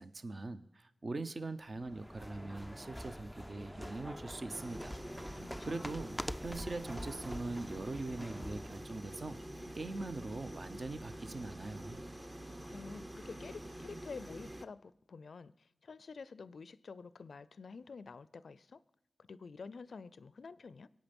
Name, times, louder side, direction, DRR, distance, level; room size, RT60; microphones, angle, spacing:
voice 1, 0.0-5.0 5.2-9.4 9.7-12.0, right 2 dB, 45° right, 11 dB, 0.8 m, -42 dB
sound 1, 1.7-8.9, equal, ahead, 0.4 m, -45 dB
sound 2, 4.5-14.7, right 1 dB, 20° right, 0.8 m, -47 dB
voice 2, 5.3-5.9 12.3-18.8 19.2-20.9, left 4 dB, 70° left, 17 dB, 0.5 m, -49 dB
23.0 x 8.8 x 5.3 m, 0.89 s
wide cardioid pair, 85°, 0 cm